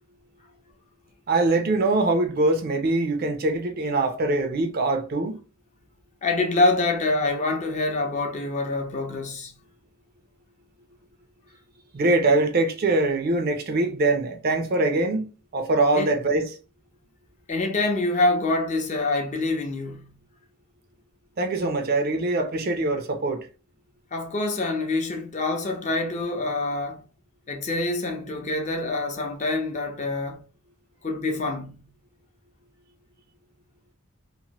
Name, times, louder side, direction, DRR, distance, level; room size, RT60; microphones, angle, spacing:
voice 1, 1.3-5.4 11.9-16.5 21.4-23.4, right 2 dB, 45° right, 0.4 m, -23 dB
voice 2, 6.2-9.6 16.0-16.1 17.5-20.2 24.1-27.0 27.5-30.4 31.0-31.9, left 2 dB, 35° left, 0.5 m, -26 dB
2.9 x 2.1 x 2.8 m
head